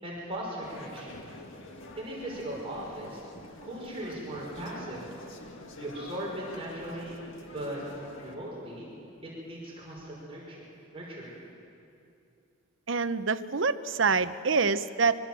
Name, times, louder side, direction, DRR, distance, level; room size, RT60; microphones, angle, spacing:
voice 1, 0.0-1.2 2.0-3.2 3.6-5.1 5.7-7.8 8.2-8.9 9.2-10.6 10.9-11.3, right 1 dB, 25° right, -4 dB, 5.6 m, -38 dB
sound 1, 0.6-8.4, left 2 dB, 60° left, 1.9 m, -47 dB
voice 2, 12.9-15.2, right 4 dB, 60° right, 11 dB, 0.8 m, -26 dB
24.5 x 23.5 x 7.6 m, 2.6 s
head